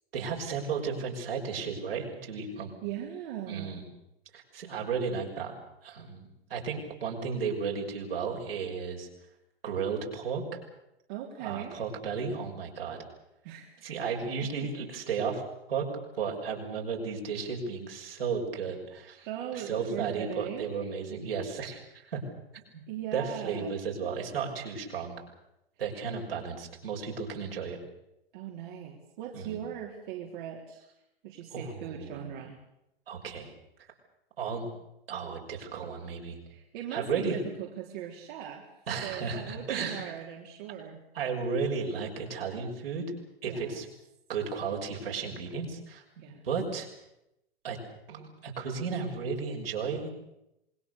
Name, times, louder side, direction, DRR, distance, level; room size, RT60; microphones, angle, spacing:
voice 1, 0.1-2.7 3.5-3.8 4.3-5.5 5.8-9.1 9.6-10.6 11.4-13.0 13.8-15.4 15.7-15.9 16.2-19.3 19.5-22.2 22.7-22.8 23.1-25.2 25.8-27.8 29.3-29.6 31.5-32.3 33.1-33.5 34.4-34.7 35.1-36.4 36.9-37.4 38.9-40.1 41.1-43.0 43.4-43.9 44.3-46.0 46.4-46.9 47.6-47.8 48.1-50.1, right 5 dB, 75° right, 0 dB, 6.3 m, -34 dB
voice 2, 2.8-3.8 11.1-11.8 13.4-13.8 14.4-14.5 19.3-20.7 22.9-23.8 28.3-30.8 31.2-32.6 36.4-38.6 39.0-41.0 43.5-43.8 46.2-46.4, right 10 dB, 55° right, 0 dB, 3.6 m, -39 dB
27.0 x 21.5 x 6.9 m, 0.86 s
figure-of-eight pair, 100°, 29 cm